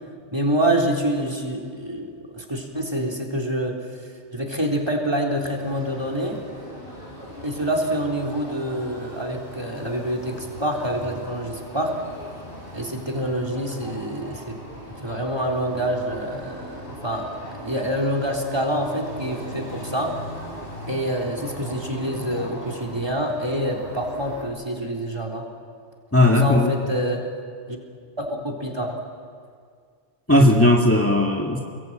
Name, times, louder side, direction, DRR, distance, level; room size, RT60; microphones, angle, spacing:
voice 1, 0.3-3.8 4.3-6.5 7.4-12.0 12.7-14.6 15.0-17.3 17.6-20.2 20.9-25.5 26.2-27.3 27.7-27.8 28.2-29.0, right 1 dB, 25° right, 2 dB, 3.7 m, -26 dB
sound 1, 5.4-24.4, equal, 55° left, 7.2 m, -39 dB
voice 2, 26.1-26.7 30.3-31.6, left 1 dB, 10° left, 0 dB, 1.9 m, -16 dB
29.0 x 22.5 x 9.0 m, 2.1 s
omnidirectional pair, 1.1 m